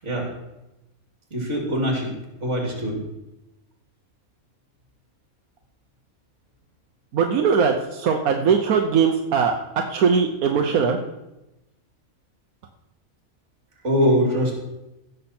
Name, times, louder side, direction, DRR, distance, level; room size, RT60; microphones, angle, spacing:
voice 1, 1.3-2.1 2.4-3.0 13.8-14.5, equal, 55° right, 0 dB, 3.1 m, -22 dB
voice 2, 7.1-11.0, right 6 dB, 90° right, 4 dB, 1.3 m, -20 dB
16.0 x 6.7 x 4.3 m, 0.95 s
omnidirectional pair, 1.5 m